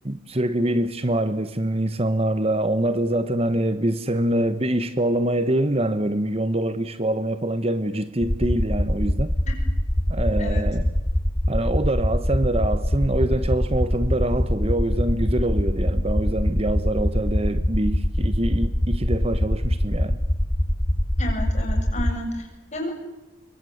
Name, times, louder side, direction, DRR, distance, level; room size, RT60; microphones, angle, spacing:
voice 1, 0.0-9.3 10.1-10.9 11.5-20.2, right 1 dB, 30° right, 1.1 m, -24 dB
sound 1, 8.2-22.2, equal, 15° left, 0.8 m, -23 dB
voice 2, 21.2-22.9, left 1 dB, 35° left, 7.6 m, -31 dB
25.5 x 23.0 x 9.4 m
head